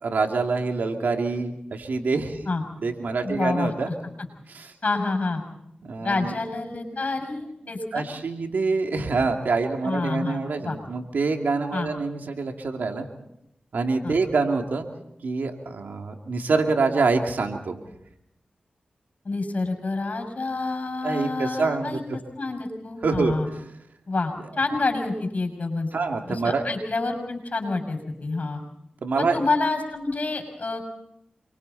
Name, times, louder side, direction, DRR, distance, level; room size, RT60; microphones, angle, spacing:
voice 1, 0.0-2.4 2.8-3.9 4.5-4.7 5.8-6.4 7.9-13.1 13.7-14.9 15.2-17.8 21.0-22.0 23.0-23.6 25.9-26.6 29.0-29.4, right 4 dB, 80° right, 3 dB, 2.7 m, -26 dB
voice 2, 3.2-3.7 4.8-5.4 6.0-8.0 9.8-10.8 11.7-11.9 14.0-14.2 19.2-23.5 24.1-25.9 26.3-28.6 29.2-30.8, left 3 dB, 55° left, 6 dB, 6.6 m, -28 dB
28.5 x 23.5 x 4.2 m, 0.79 s
cardioid pair, 40°, 3 cm